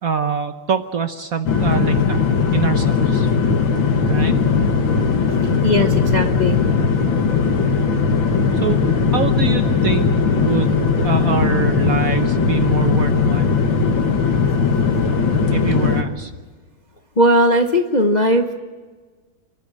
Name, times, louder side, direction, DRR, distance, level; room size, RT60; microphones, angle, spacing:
voice 1, 0.0-2.2 2.5-3.3 4.1-4.3 8.6-8.8 9.1-10.1 10.4-13.5 15.5-16.3, right 7 dB, 55° right, 8 dB, 1.1 m, -24 dB
sound 1, 1.5-16.0, left 5 dB, 70° left, 2.3 m, -18 dB
voice 2, 5.6-6.6 17.2-18.5, equal, 30° left, 4 dB, 0.8 m, -17 dB
27.5 x 12.0 x 8.7 m, 1.4 s
omnidirectional pair, 2.2 m